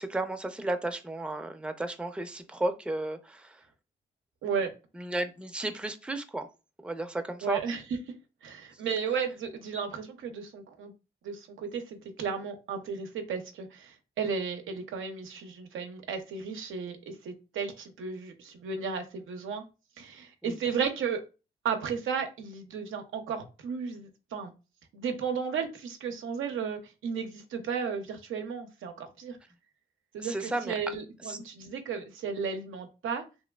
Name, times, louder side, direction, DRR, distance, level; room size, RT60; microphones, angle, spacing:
voice 1, 0.0-3.6 5.0-6.5 6.8-7.6 20.4-20.6 30.2-30.7 31.3-31.4, right 2 dB, 5° right, 6 dB, 0.5 m, -33 dB
voice 2, 4.4-4.7 7.4-7.8 8.4-10.9 11.2-19.6 20.0-21.2 21.6-24.5 24.9-29.4 30.1-33.2, right 6 dB, 85° right, 5 dB, 0.5 m, -34 dB
3.1 x 2.2 x 2.2 m, 0.29 s
cardioid pair, 50°, 20 cm